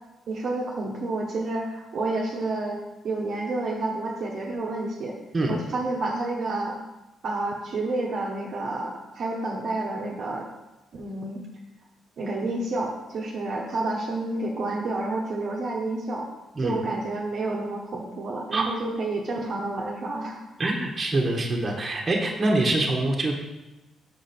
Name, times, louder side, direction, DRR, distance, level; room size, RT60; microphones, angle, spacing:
voice 1, 0.3-5.1 5.5-6.8 7.2-10.5 10.9-11.4 12.2-16.3 16.6-20.4, right 2 dB, 60° right, -1 dB, 1.0 m, -29 dB
voice 2, 20.6-23.3, right 2 dB, 35° right, 0 dB, 1.3 m, -24 dB
6.2 x 5.0 x 4.4 m, 1.0 s
cardioid pair, 90°, 0 cm